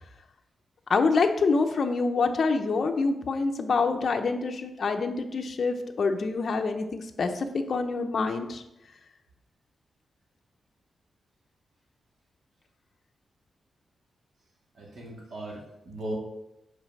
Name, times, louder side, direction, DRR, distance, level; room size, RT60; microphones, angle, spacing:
voice 1, 0.9-8.6, left 4 dB, 50° left, 5 dB, 0.7 m, -26 dB
voice 2, 14.8-16.1, right 1 dB, 50° right, -3 dB, 2.1 m, -37 dB
5.5 x 4.8 x 6.2 m, 0.87 s
wide cardioid pair, 150°, 0 cm